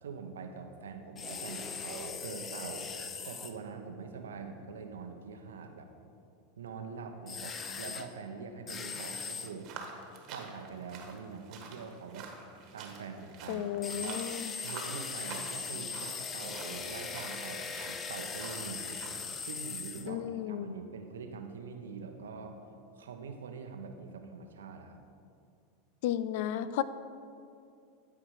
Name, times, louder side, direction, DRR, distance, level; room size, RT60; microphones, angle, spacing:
voice 1, 0.0-2.9 3.2-5.9 6.6-9.7 10.3-12.3 12.7-14.3 14.6-19.0 19.4-22.6 23.0-25.0, right 5 dB, 80° right, 5 dB, 0.9 m, -44 dB
sound 1, 1.2-3.5 7.3-8.1 8.7-9.5 13.8-20.1, left 5 dB, 30° left, 0.7 m, -39 dB
sound 2, 9.6-19.6, right 5 dB, 50° right, 1.4 m, -48 dB
voice 2, 13.5-14.5 20.1-20.8 26.0-26.8, left 11 dB, 65° left, 14 dB, 0.4 m, -33 dB
12.5 x 4.9 x 4.8 m, 2.5 s
hypercardioid pair, 95°, 0 cm